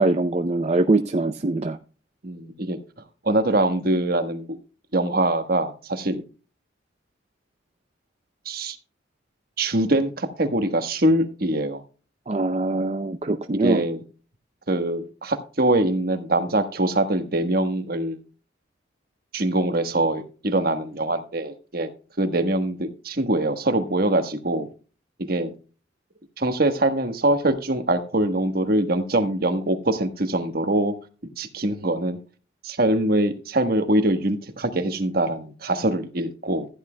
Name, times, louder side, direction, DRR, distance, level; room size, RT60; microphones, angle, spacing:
voice 1, 0.0-1.8 12.3-13.8, right 2 dB, 35° right, 0.5 m, -22 dB
voice 2, 2.2-2.8 3.2-4.4 4.9-6.2 8.4-8.8 9.6-11.8 13.6-14.0 14.7-18.2 19.3-21.9 22.2-24.7 25.2-25.5 26.4-30.9 31.4-32.2 32.6-36.7, right 1 dB, 50° right, 1.3 m, -23 dB
15.0 x 10.0 x 2.2 m
head